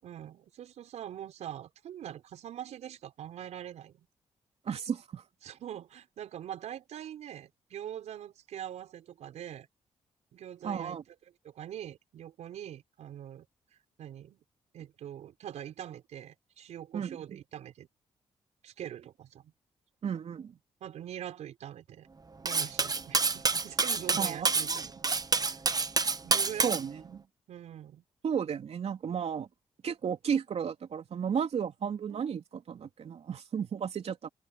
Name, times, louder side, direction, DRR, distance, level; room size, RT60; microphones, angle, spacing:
voice 1, 0.0-4.0 5.4-9.7 10.3-11.0 11.4-13.5 14.0-14.4 14.7-17.9 18.6-19.5 20.8-22.1 22.4-24.9 25.4-25.6 26.2-26.8 27.5-28.0 32.1-32.4, right 10 dB, 80° right, 5.6 m, -43 dB
voice 2, 4.6-5.2 10.6-11.0 16.9-17.2 20.0-20.6 24.2-24.8 26.6-27.2 28.2-29.5 29.8-34.3, right 7 dB, 65° right, 3.2 m, -33 dB
Cutlery silverware, 22.5-26.8, right 4 dB, 35° right, 1.3 m, -28 dB
supercardioid pair, 60°, 11 cm